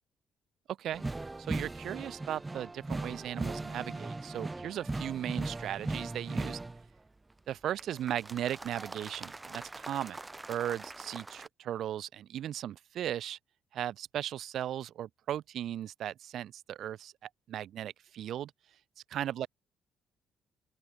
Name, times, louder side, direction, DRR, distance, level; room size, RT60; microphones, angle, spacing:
sound 1, 0.9-6.9 7.8-11.5, right 2 dB, 20° right, 0.5 m, -39 dB
voice 1, 1.5-6.6 7.5-10.2 10.5-13.4 13.7-17.1 17.5-18.5 19.1-19.5, right 11 dB, 75° right, 0.8 m, -37 dB
open air
cardioid pair, 90°, 0 cm